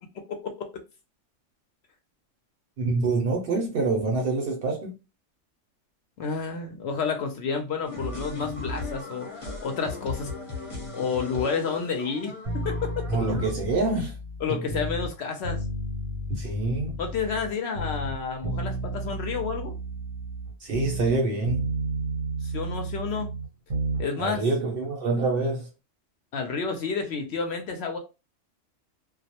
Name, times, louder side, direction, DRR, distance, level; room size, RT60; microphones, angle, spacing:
voice 1, 0.3-0.7 6.2-10.3 10.9-12.9 14.4-15.6 17.0-19.7 22.4-23.4 24.0-24.5 26.3-28.0, left 5 dB, 65° left, 0.7 m, -30 dB
voice 2, 2.8-4.9 13.1-14.1 16.3-17.0 20.6-21.7 24.2-25.7, right 3 dB, 60° right, 0.7 m, -26 dB
sound 1, 7.8-13.5, left 3 dB, 30° left, 0.8 m, -36 dB
sound 2, 12.5-15.1 15.4-17.5 17.8-21.2 21.4-24.1 24.4-24.5, right 2 dB, 85° right, 1.1 m, -32 dB
2.3 x 2.0 x 2.7 m
omnidirectional pair, 1.3 m